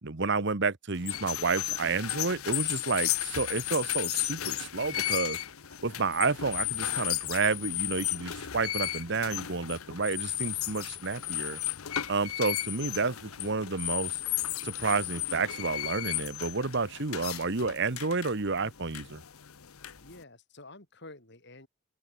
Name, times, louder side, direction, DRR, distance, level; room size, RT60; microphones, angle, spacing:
voice 1, 0.0-5.4 5.8-11.6 12.1-14.2 14.6-19.2, right 4 dB, 55° right, 1.2 m, -30 dB
sound 1, 1.0-20.2, left 14 dB, 85° left, 0.9 m, -34 dB
sound 2, 5.9-10.3, right 2 dB, 80° right, 7.8 m, -61 dB
voice 2, 20.0-21.7, left 2 dB, 55° left, 6.4 m, -49 dB
open air
head